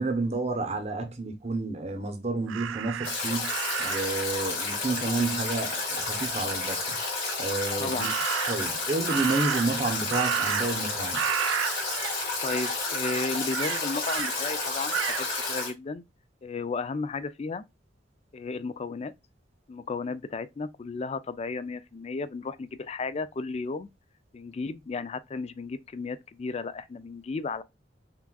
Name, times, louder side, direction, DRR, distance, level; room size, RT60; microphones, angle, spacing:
voice 1, 0.0-3.5 3.8-7.0 7.4-8.1 8.5-11.2, right 3 dB, 35° right, 0.7 m, -30 dB
Crow, 2.5-4.2 8.0-8.7 9.1-10.9 11.1-12.1 12.4-12.7 13.0-14.3 14.9-15.2, right 10 dB, 75° right, 0.3 m, -31 dB
Stream / Drip / Trickle dribble, 3.0-15.7, left 3 dB, 55° left, 2.7 m, -31 dB
voice 2, 7.8-8.1 12.4-16.0 16.4-17.6 18.3-19.1 19.7-23.9 24.3-27.6, left 4 dB, 35° left, 0.3 m, -34 dB
5.8 x 2.4 x 2.2 m
head